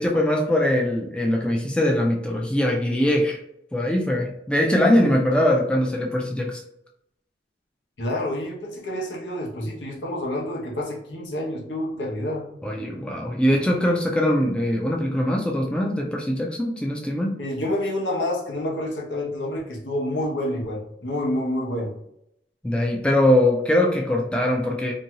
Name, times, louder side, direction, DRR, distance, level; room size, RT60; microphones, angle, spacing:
voice 1, 0.0-3.4 3.7-6.6 12.6-17.4 22.6-24.9, left 1 dB, 5° left, 0 dB, 0.3 m, -22 dB
voice 2, 8.0-12.5 17.4-22.0, left 1 dB, 90° left, -2 dB, 0.8 m, -28 dB
2.6 x 2.2 x 2.8 m, 0.76 s
head